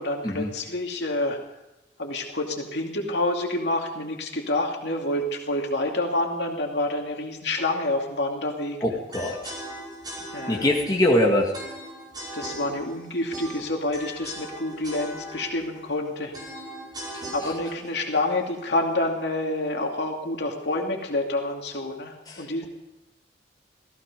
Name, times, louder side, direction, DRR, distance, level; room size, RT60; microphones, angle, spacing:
voice 1, 0.0-1.4 2.0-9.0 10.3-10.7 12.3-16.3 17.3-22.7, left 2 dB, 75° left, 1 dB, 2.6 m, -28 dB
voice 2, 8.8-9.5 10.5-11.5, left 1 dB, 20° left, -1 dB, 1.9 m, -22 dB
sound 1, 9.1-19.2, right 1 dB, 25° right, 5.2 m, -39 dB
15.5 x 15.5 x 5.3 m, 0.98 s
head